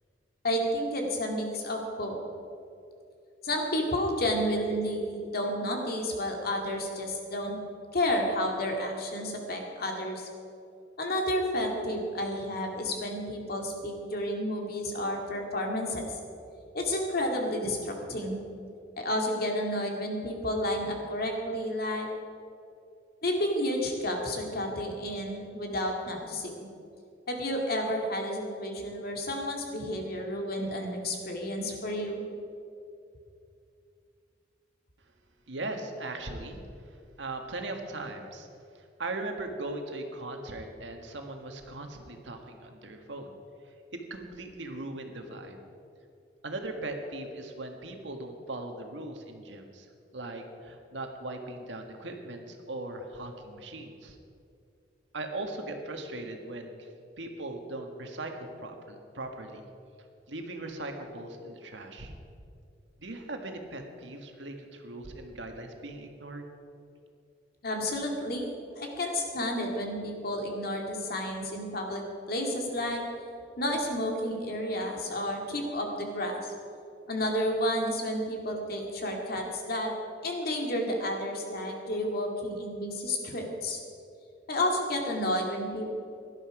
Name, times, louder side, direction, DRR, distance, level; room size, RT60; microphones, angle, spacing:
voice 1, 0.4-2.2 3.4-7.6 7.9-10.3 11.0-16.1 16.7-18.4 19.0-22.1 23.2-26.7 27.3-32.2 67.6-73.0 73.6-76.5 77.1-79.9 80.2-83.8 84.5-85.9, left 1 dB, 60° left, 2 dB, 2.2 m, -31 dB
voice 2, 35.5-36.6 37.2-38.5 38.7-43.3 43.9-45.6 46.4-49.9 50.1-54.2 55.1-56.9 57.2-59.6 60.3-62.1 63.0-66.5, right 2 dB, 90° right, 4 dB, 1.7 m, -39 dB
17.0 x 11.5 x 4.9 m, 2.6 s
head